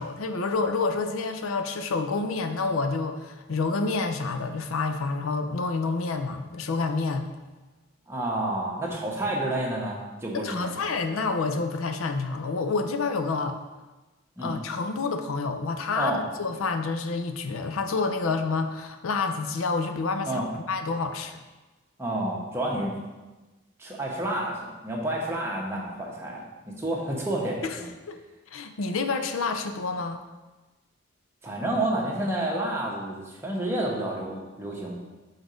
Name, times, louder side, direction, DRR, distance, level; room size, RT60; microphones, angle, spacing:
voice 1, 0.0-7.3 10.3-13.6 14.4-21.4 27.6-27.8 28.1-28.2 28.5-30.2, left 4 dB, 85° left, 7 dB, 0.5 m, -28 dB
voice 2, 8.1-10.8 14.4-14.5 15.9-16.2 20.2-20.5 22.0-22.9 23.8-27.9 31.4-35.0, right 1 dB, 10° right, -2 dB, 1.0 m, -30 dB
6.1 x 4.0 x 5.0 m, 1.2 s
head